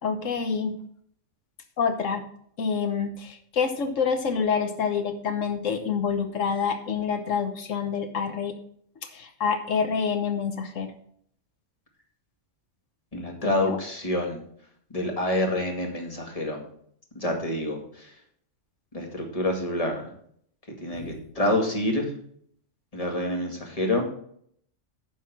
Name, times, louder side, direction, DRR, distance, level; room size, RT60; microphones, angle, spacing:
voice 1, 0.0-0.8 1.8-2.2 2.6-8.6 9.1-10.9 13.4-13.8 20.9-21.2, left 6 dB, 85° left, 7 dB, 1.4 m, -27 dB
voice 2, 13.1-14.4 14.9-16.6 17.2-18.1 18.9-20.1 20.8-22.1 22.9-24.0, left 1 dB, 30° left, 1 dB, 2.2 m, -27 dB
9.6 x 6.2 x 6.0 m, 0.64 s
omnidirectional pair, 1.3 m